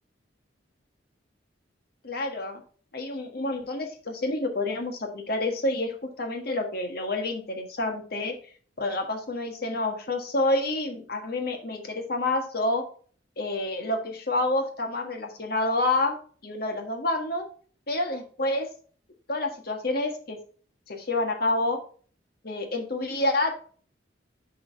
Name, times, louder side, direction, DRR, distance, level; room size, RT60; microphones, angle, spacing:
voice 1, 2.0-2.6 2.9-8.4 8.8-12.8 13.4-16.2 16.4-17.4 17.9-18.7 19.3-20.4 20.9-21.8 22.4-23.6, left 2 dB, 55° left, 4 dB, 1.5 m, -28 dB
7.3 x 3.8 x 5.6 m, 0.43 s
head